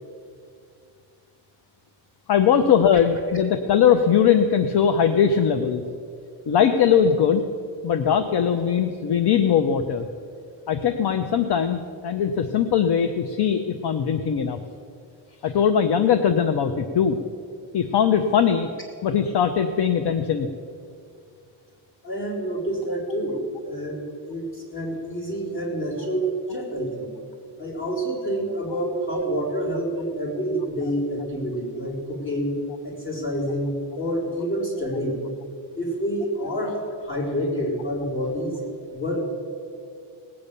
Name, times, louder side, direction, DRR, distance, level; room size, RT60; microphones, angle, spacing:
voice 1, 2.3-5.8 6.5-7.4 7.8-10.1 10.7-14.6 15.4-17.2 17.7-18.7 19.0-20.5, left 7 dB, 55° left, 8 dB, 0.7 m, -20 dB
voice 2, 22.0-27.1 27.6-32.6 32.8-35.2 35.7-38.6 38.9-39.2, equal, 25° left, -4 dB, 4.1 m, -28 dB
18.5 x 8.8 x 6.7 m, 2.4 s
wide cardioid pair, 155°, 47 cm